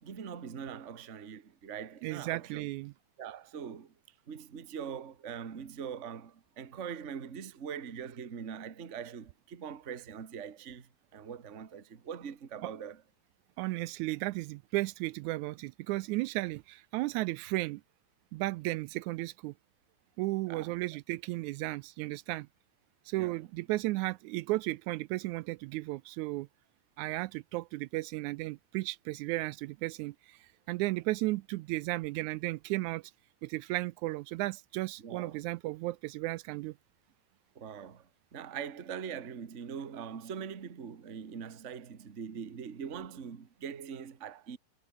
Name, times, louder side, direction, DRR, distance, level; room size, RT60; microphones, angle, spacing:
voice 1, 0.0-2.7 3.2-3.9 4.3-13.0 20.5-20.8 23.2-23.4 35.0-35.4 37.5-44.6, right 7 dB, 35° right, 1.3 m, -42 dB
voice 2, 2.0-2.9 12.6-12.7 13.6-17.8 18.3-19.5 20.2-22.5 23.1-26.5 27.0-30.4 30.7-33.1 33.4-36.7, right 19 dB, 80° right, 1.9 m, -34 dB
omnidirectional pair, 3.5 m